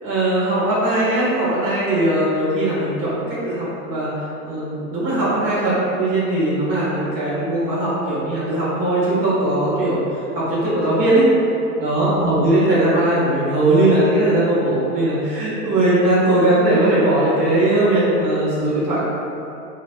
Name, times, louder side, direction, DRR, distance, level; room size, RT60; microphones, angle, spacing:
voice 1, 0.0-4.1 4.4-10.0 10.4-11.2 11.8-19.0, right 1 dB, 15° right, -11 dB, 0.7 m, -19 dB
3.2 x 2.1 x 2.6 m, 2.8 s
hypercardioid pair, 145°, 48 cm